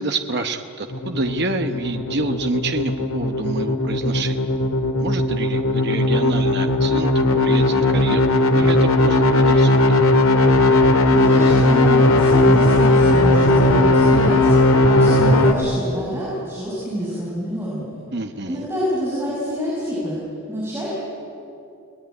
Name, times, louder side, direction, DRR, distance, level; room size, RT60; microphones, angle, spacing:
voice 1, 0.0-4.4 5.0-9.8 18.1-18.7, right 2 dB, 50° right, 6 dB, 1.0 m, -28 dB
sound 1, 0.9-15.5, left 2 dB, 75° left, 2.2 m, -17 dB
voice 2, 11.1-14.6 14.9-18.0 18.4-20.2 20.5-20.9, equal, 10° right, -8 dB, 6.6 m, -27 dB
29.5 x 19.5 x 9.6 m, 2.7 s
head